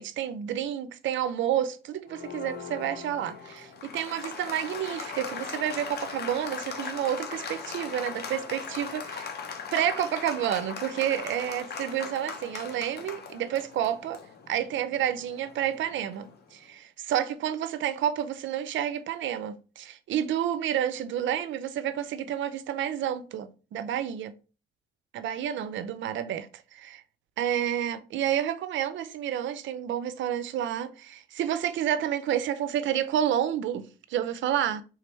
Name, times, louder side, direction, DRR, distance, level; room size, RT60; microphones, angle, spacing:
voice 1, 0.0-9.3 9.7-14.2 14.5-24.3 25.1-27.0 27.4-34.8, right 10 dB, 75° right, 0.5 m, -30 dB
Applause, 2.1-16.4, left 6 dB, 55° left, 1.0 m, -39 dB
3.4 x 3.3 x 4.4 m
cardioid pair, 90°, 20 cm